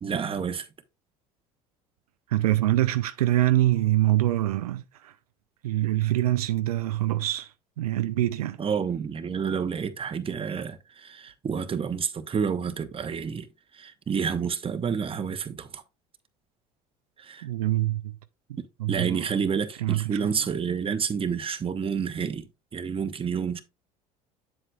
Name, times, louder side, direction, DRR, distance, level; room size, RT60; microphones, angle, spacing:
voice 1, 0.0-0.7 8.6-13.5 13.7-15.8 17.2-17.5 18.6-23.6, right 6 dB, 30° right, 1.0 m, -29 dB
voice 2, 2.3-5.1 5.6-7.5 7.8-8.6 17.4-18.2 18.8-19.3 19.8-20.4, right 15 dB, 90° right, 0.5 m, -25 dB
7.8 x 7.6 x 2.3 m
hypercardioid pair, 70°, 19 cm